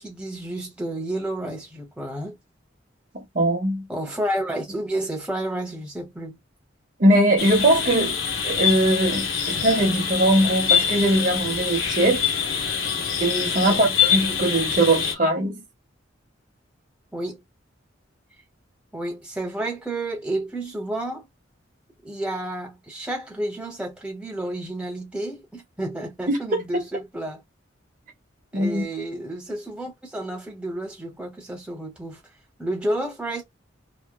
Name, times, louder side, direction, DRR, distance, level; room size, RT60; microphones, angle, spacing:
voice 1, 0.0-2.4 3.9-6.4 13.5-13.9 17.1-17.4 18.9-21.3 22.0-27.4 28.5-32.2 32.6-33.4, right 1 dB, 5° right, 0.8 m, -31 dB
voice 2, 3.1-3.9 7.0-8.2 8.4-12.2 13.2-15.6 26.3-26.6 28.5-28.8, right 1 dB, 45° right, 0.7 m, -21 dB
sound 1, 7.4-15.1, left 7 dB, 85° left, 0.8 m, -25 dB
2.9 x 2.1 x 2.2 m
head